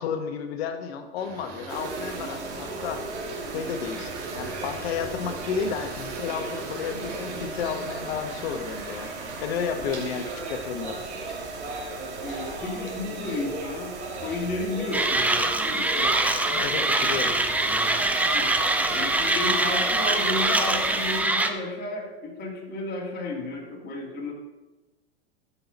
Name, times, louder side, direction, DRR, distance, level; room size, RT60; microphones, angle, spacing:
voice 1, 0.0-3.0 3.5-9.1 9.4-11.4 16.0-16.1 16.5-17.3, left 6 dB, 65° left, 7 dB, 1.2 m, -32 dB
sound 1, 1.2-11.8, right 3 dB, 60° right, 3.1 m, -41 dB
sound 2, 1.7-21.2, right 3 dB, 85° right, 2.2 m, -36 dB
voice 2, 12.2-14.0 14.2-16.2 17.2-17.9 18.2-18.5 18.9-24.3, left 2 dB, 30° left, -2 dB, 2.7 m, -33 dB
Mechanisms, 14.9-21.5, right 2 dB, 5° right, 0.5 m, -24 dB
12.5 x 5.7 x 4.1 m, 1.1 s
hypercardioid pair, 110°, 33 cm